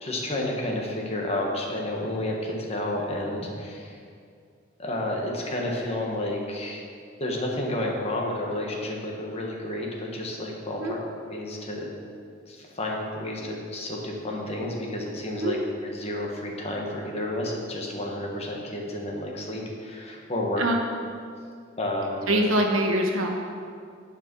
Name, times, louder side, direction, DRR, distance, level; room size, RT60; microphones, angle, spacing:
voice 1, 0.0-4.0 4.8-6.8 7.2-11.0 11.3-11.9 12.5-15.6 15.8-20.6 21.8-22.4, left 1 dB, 30° left, -1 dB, 1.4 m, -31 dB
voice 2, 22.3-23.3, right 1 dB, 80° right, 1 dB, 1.2 m, -23 dB
9.7 x 5.1 x 6.1 m, 2.3 s
head